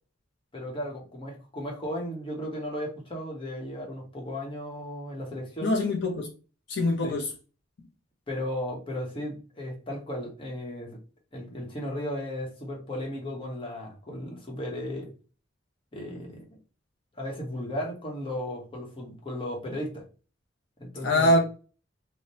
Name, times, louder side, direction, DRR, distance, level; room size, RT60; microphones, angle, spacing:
voice 1, 0.5-5.8 7.0-7.2 8.3-11.0 11.3-15.1 15.9-16.6 17.2-20.0 20.8-21.4, left 1 dB, 30° left, 0.9 m, -35 dB
voice 2, 5.6-6.3 6.7-7.3 21.0-21.4, left 1 dB, 65° left, 0.5 m, -23 dB
3.2 x 2.1 x 2.7 m
head